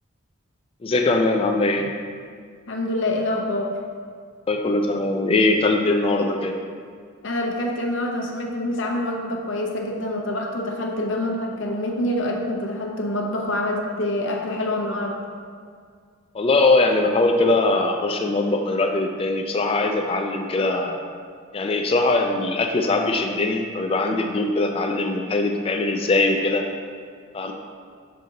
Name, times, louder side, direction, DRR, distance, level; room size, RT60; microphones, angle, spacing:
voice 1, 0.8-1.9 4.5-6.5 16.3-21.0 21.5-26.7 27.3-27.5, left 2 dB, 30° left, 4 dB, 0.3 m, -21 dB
voice 2, 2.7-3.8 7.2-15.2, left 1 dB, 65° left, 1 dB, 0.8 m, -26 dB
6.7 x 3.8 x 3.8 m, 2.1 s
head